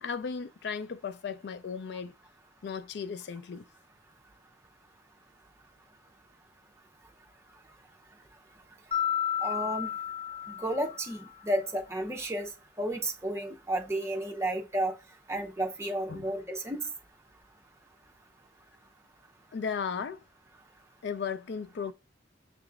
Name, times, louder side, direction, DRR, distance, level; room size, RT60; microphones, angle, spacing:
voice 1, 0.0-2.1 2.6-3.7 16.1-16.3 19.5-20.2 21.0-21.9, left 6 dB, 60° left, 0.4 m, -35 dB
Mallet percussion, 8.9-11.3, left 10 dB, 30° left, 0.7 m, -32 dB
voice 2, 9.4-9.9 10.6-12.5 12.8-14.9 15.3-16.8, right 1 dB, 15° right, 0.7 m, -32 dB
6.6 x 3.0 x 2.3 m
head